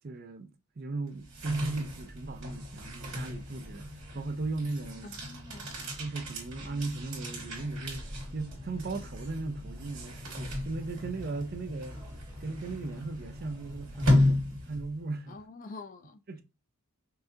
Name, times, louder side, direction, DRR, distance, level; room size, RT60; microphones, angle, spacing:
voice 1, 0.0-5.1 6.0-12.0 12.4-15.4 16.3-16.4, right 3 dB, 40° right, 0.5 m, -37 dB
sound 1, 1.1-15.1, left 1 dB, 65° right, 2.1 m, -34 dB
voice 2, 5.0-5.7 15.3-16.2, left 3 dB, 35° left, 0.3 m, -46 dB
sound 2, 7.1-14.2, equal, 15° left, 0.9 m, -53 dB
5.5 x 2.4 x 2.7 m
head